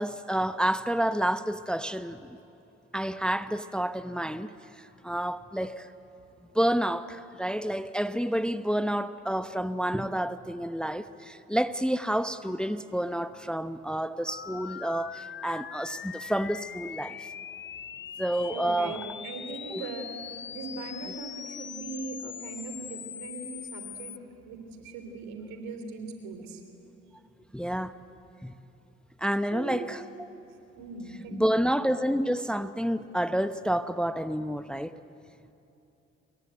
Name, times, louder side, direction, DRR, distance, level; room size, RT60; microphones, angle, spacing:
voice 1, 0.0-2.4 2.9-5.9 6.5-17.3 18.2-19.0 19.7-19.8 27.5-28.0 28.4-28.5 29.2-30.3 31.3-35.0, equal, 5° left, 12 dB, 0.9 m, -29 dB
sound 1, 14.3-24.2, left 8 dB, 35° left, 0.6 m, -41 dB
voice 2, 18.4-20.1 20.5-24.1 24.5-26.6 29.5-29.9 30.8-31.7, right 4 dB, 75° right, 6 dB, 3.5 m, -39 dB
28.0 x 22.5 x 9.2 m, 2.9 s
hypercardioid pair, 45°, 34 cm